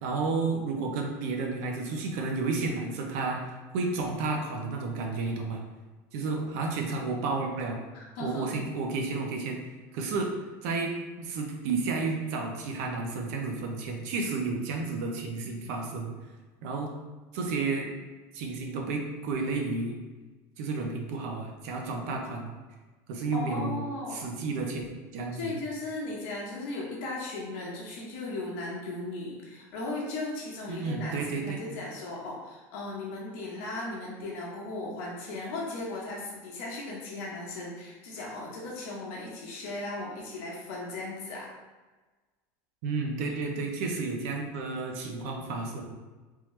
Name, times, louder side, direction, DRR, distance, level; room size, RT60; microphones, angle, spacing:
voice 1, 0.0-3.4 3.7-5.6 6.1-7.8 8.2-9.6 9.9-10.3 10.6-10.9 11.2-16.1 16.6-16.9 17.3-17.9 18.3-20.0 20.6-22.5 23.1-23.8 24.1-24.8 25.1-25.5 30.7-31.6 42.8-45.8, right 3 dB, 65° right, 2 dB, 0.7 m, -31 dB
voice 2, 7.9-8.5 23.3-24.2 25.3-41.5, left 2 dB, 60° left, -3 dB, 1.1 m, -37 dB
3.6 x 3.0 x 3.1 m, 1.3 s
cardioid pair, 180°, 9 cm